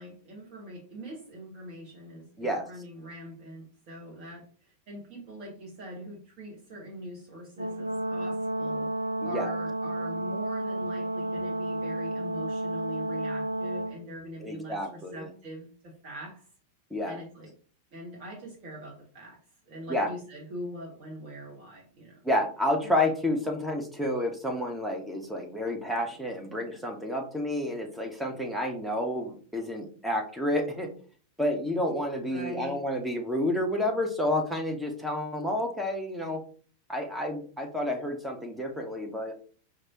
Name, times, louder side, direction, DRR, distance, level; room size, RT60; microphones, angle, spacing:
voice 1, 0.0-8.9 9.2-16.5 17.0-17.5 17.9-19.4 19.7-22.2 22.8-22.9 32.3-32.8, equal, 45° right, -2 dB, 1.2 m, -43 dB
Brass instrument, 7.6-14.0, right 1 dB, 75° right, 0.4 m, -31 dB
voice 2, 9.2-9.5 14.4-15.3 16.9-17.2 19.9-20.1 22.2-30.9 31.4-36.4 36.9-39.3, left 1 dB, 5° right, 1 dB, 0.8 m, -30 dB
4.6 x 2.5 x 2.9 m, 0.42 s
figure-of-eight pair, 90°, 0 cm